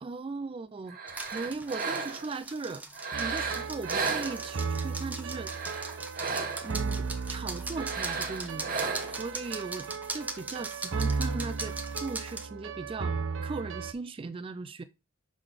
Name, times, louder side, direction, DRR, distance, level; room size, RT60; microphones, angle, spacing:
voice 1, 0.0-2.9 3.1-5.5 6.6-8.7 9.1-13.2 13.4-14.8, right 3 dB, 25° right, 0.3 m, -38 dB
sound 1, 0.9-2.4 2.9-4.8 5.3-6.8 7.7-9.3, right 4 dB, 45° right, 1.0 m, -34 dB
sound 2, 1.1-12.4, right 2 dB, 10° right, 0.8 m, -40 dB
sound 3, 3.1-13.9, right 4 dB, 75° right, 0.6 m, -35 dB
6.3 x 3.8 x 4.9 m
head